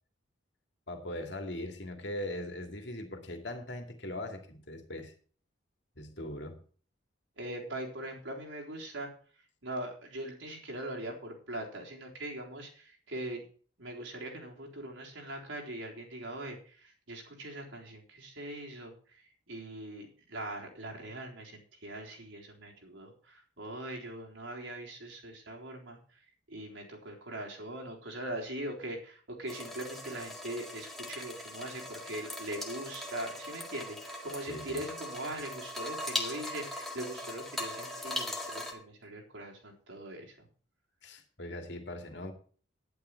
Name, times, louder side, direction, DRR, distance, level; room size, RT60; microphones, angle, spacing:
voice 1, 0.9-5.1 6.0-6.6 34.5-34.8 41.0-42.3, left 1 dB, 60° left, 2.5 m, -40 dB
voice 2, 7.4-9.1 9.6-13.5 13.8-18.9 19.5-26.0 26.5-40.3, right 1 dB, 75° right, 3.9 m, -41 dB
sound 1, 29.5-38.7, left 1 dB, ahead, 1.8 m, -40 dB
11.5 x 11.0 x 4.6 m
head